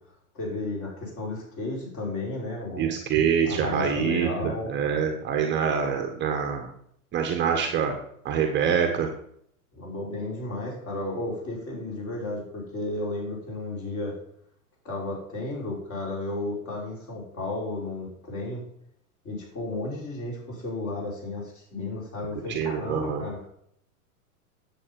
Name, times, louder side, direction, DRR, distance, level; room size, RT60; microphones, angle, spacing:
voice 1, 0.3-3.0 3.4-4.7 9.7-14.2 14.8-18.6 19.2-23.5, left 2 dB, 30° left, -2 dB, 5.6 m, -33 dB
voice 2, 2.8-6.7 7.1-7.9 8.2-9.1 22.5-23.2, right 7 dB, 25° right, 4 dB, 1.4 m, -25 dB
10.0 x 8.1 x 5.4 m, 0.68 s
hypercardioid pair, 130°, 44 cm